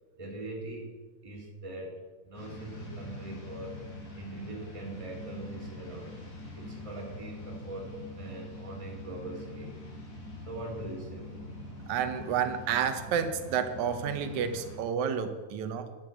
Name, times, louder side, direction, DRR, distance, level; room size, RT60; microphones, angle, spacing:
voice 1, 0.2-0.9 1.2-2.0 2.2-3.8 4.1-6.2 6.5-7.9 8.2-9.8 10.4-11.4, right 2 dB, 10° right, -2 dB, 1.9 m, -41 dB
sound 1, 2.3-14.8, left 2 dB, 70° left, 5.4 m, -44 dB
voice 2, 11.9-15.9, right 7 dB, 75° right, 9 dB, 2.2 m, -30 dB
10.5 x 6.0 x 7.8 m, 1.3 s
omnidirectional pair, 3.6 m